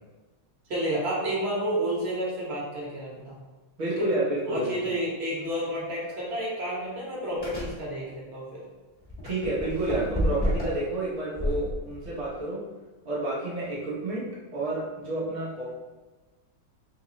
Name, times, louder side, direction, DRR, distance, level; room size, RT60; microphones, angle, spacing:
voice 1, 0.7-3.3 4.5-8.6, right 1 dB, 50° right, -6 dB, 0.8 m, -30 dB
voice 2, 3.8-4.7 9.2-12.6 13.0-15.6, right 2 dB, 90° right, -8 dB, 0.6 m, -30 dB
sound 1, 5.4-5.5 6.0-6.2 7.4-7.8 9.0-10.8 11.4-12.4, equal, 30° left, 0.4 m, -30 dB
3.4 x 2.0 x 3.7 m, 1.2 s
omnidirectional pair, 2.4 m